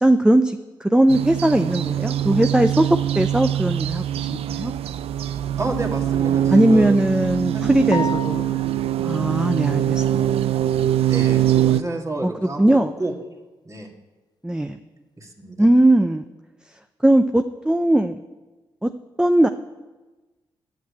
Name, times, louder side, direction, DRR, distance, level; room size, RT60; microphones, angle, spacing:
voice 1, 0.0-4.7 6.5-8.6 9.0-10.3 12.2-12.3 12.6-12.9 14.4-14.8 15.6-16.2 17.0-18.2 18.8-18.9 19.2-19.5, right 1 dB, 10° right, 8 dB, 0.6 m, -19 dB
sound 1, 1.1-11.8, right 11 dB, 65° right, 0.4 m, -23 dB
voice 2, 5.6-7.0 7.5-8.1 11.1-13.1 13.7-13.9 15.2-15.7, right 2 dB, 30° right, 1 dB, 2.1 m, -30 dB
sound 2, 7.9-9.0, left 4 dB, 40° left, 0.6 m, -31 dB
9.3 x 6.5 x 8.4 m, 1.2 s
hypercardioid pair, 40°, 11 cm